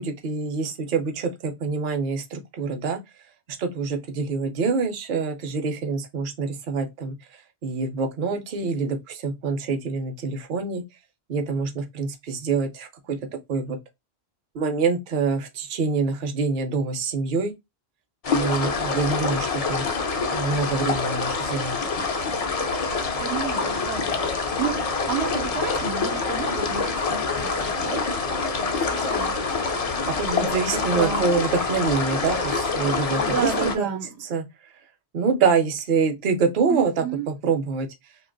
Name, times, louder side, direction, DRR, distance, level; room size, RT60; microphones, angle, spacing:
voice 1, 0.0-3.0 3.5-7.2 7.6-10.8 11.3-13.2 13.5-13.8 14.5-17.5 18.3-19.9 20.3-21.8 30.2-33.5 33.8-34.0 34.3-34.4 35.1-37.9, right 5 dB, 55° right, 0.7 m, -25 dB
sound 1, 18.2-33.8, left 4 dB, 45° left, 0.5 m, -26 dB
voice 2, 23.2-29.7 30.7-31.3 32.7-34.2 36.7-37.3, right 7 dB, 90° right, 0.9 m, -32 dB
2.7 x 2.3 x 3.7 m
omnidirectional pair, 1.1 m